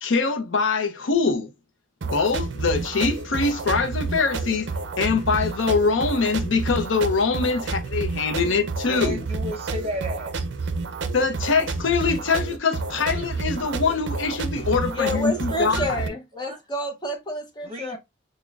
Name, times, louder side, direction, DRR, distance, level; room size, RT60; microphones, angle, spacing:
voice 1, 0.0-1.5 2.1-4.7 5.0-9.2 11.1-16.0, left 4 dB, 75° left, 0.6 m, -23 dB
sound 1, 2.0-16.1, right 3 dB, 60° right, 0.4 m, -30 dB
voice 2, 8.9-10.7 16.3-16.6 17.6-18.0, equal, 30° right, 0.8 m, -34 dB
voice 3, 14.9-18.0, equal, 20° left, 0.7 m, -29 dB
6.0 x 2.1 x 2.3 m
head